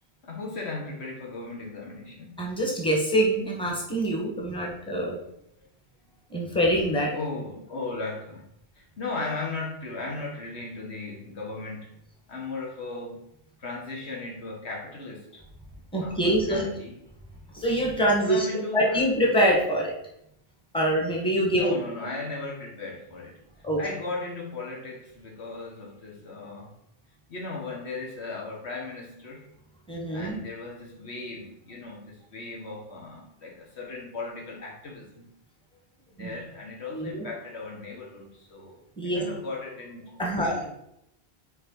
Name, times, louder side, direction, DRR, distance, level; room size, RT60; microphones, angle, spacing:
voice 1, 0.2-2.4 7.1-8.5 8.8-11.9 12.3-13.2 13.6-15.4 16.0-17.0 18.2-19.0 21.5-23.4 23.8-26.7 27.3-29.5 30.1-35.3 36.2-40.7, left 3 dB, 85° left, 0 dB, 1.8 m, -37 dB
voice 2, 2.4-5.2 6.3-7.1 15.9-16.7 17.5-18.5 18.7-19.9 20.7-21.7 23.6-23.8 29.9-30.3 36.2-36.3 36.9-37.2 39.0-39.2 40.2-40.6, equal, 5° left, -1 dB, 1.6 m, -24 dB
6.4 x 4.6 x 4.7 m, 0.78 s
omnidirectional pair, 1.1 m